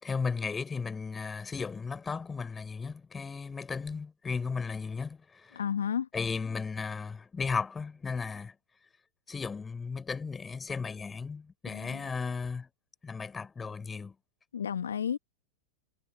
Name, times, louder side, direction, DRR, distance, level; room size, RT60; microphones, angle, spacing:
voice 1, 0.0-5.6 6.1-8.5 9.3-12.7 13.0-14.1, left 5 dB, 15° left, 4.2 m, -35 dB
voice 2, 5.5-6.1 11.7-12.0 14.5-15.2, left 8 dB, 65° left, 1.0 m, -32 dB
figure-of-eight pair, 90°, 0 cm